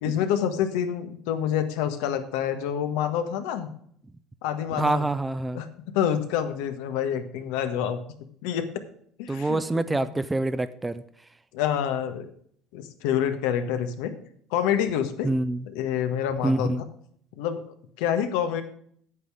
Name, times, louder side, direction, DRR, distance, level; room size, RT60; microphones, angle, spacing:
voice 1, 0.0-3.7 4.4-5.0 5.5-8.0 8.4-8.7 9.2-10.0 11.5-12.3 12.7-14.1 14.5-15.3 15.6-16.7 17.4-17.6 18.0-18.6, left 9 dB, 85° left, 8 dB, 1.5 m, -27 dB
voice 2, 4.8-5.6 9.3-11.0 15.2-15.6 16.4-16.8, right 2 dB, 10° right, 13 dB, 0.5 m, -26 dB
9.2 x 8.5 x 4.9 m, 0.63 s
cardioid pair, 145°, 0 cm